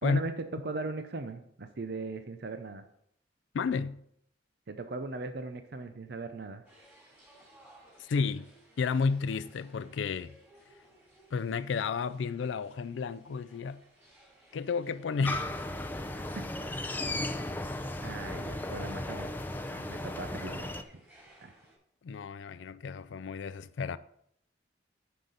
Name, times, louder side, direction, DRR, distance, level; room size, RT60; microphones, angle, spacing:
voice 1, 0.0-2.8 4.7-6.6 16.1-16.2 17.2-17.5 18.0-19.3 19.7-20.7 21.4-21.5, right 3 dB, 60° right, 0.6 m, -39 dB
voice 2, 3.5-4.0 8.0-8.5 8.8-10.4 11.3-13.8 14.5-15.5 22.0-24.0, left 5 dB, 90° left, 0.4 m, -32 dB
sound 1, 6.7-21.8, right 1 dB, 10° right, 3.3 m, -61 dB
sound 2, 15.2-20.8, left 1 dB, 10° left, 0.5 m, -36 dB
9.5 x 6.7 x 4.0 m
head